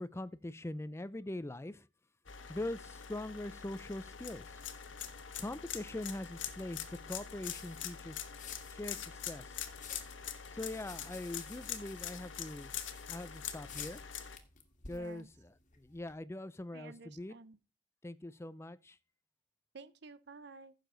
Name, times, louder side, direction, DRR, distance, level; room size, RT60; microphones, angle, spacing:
voice 1, 0.0-1.9 2.5-4.6 5.4-8.2 8.7-9.6 10.5-12.8 13.1-14.0 14.9-17.3 18.0-19.0, left 1 dB, 15° left, 0.4 m, -42 dB
sound 1, 2.3-14.4, left 8 dB, 85° left, 1.2 m, -44 dB
sound 2, 4.5-16.1, left 6 dB, 45° left, 1.7 m, -55 dB
voice 2, 14.9-15.3 16.7-17.6 19.7-20.7, right 4 dB, 65° right, 0.8 m, -52 dB
15.0 x 6.7 x 3.9 m
head